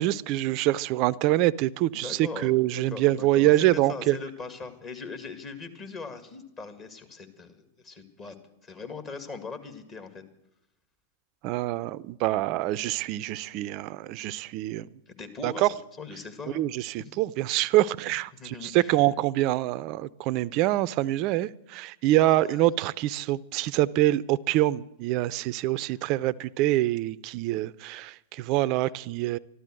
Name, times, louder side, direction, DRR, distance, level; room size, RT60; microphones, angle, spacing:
voice 1, 0.0-4.2 11.4-14.9 15.4-15.7 16.5-29.4, right 15 dB, 45° right, 0.5 m, -25 dB
voice 2, 1.9-8.3 8.6-10.2 15.1-15.7 16.0-16.6 17.0-17.1 18.4-19.0 22.3-22.6, left 4 dB, 30° left, 2.0 m, -40 dB
13.0 x 12.5 x 7.7 m
hypercardioid pair, 100°, 0 cm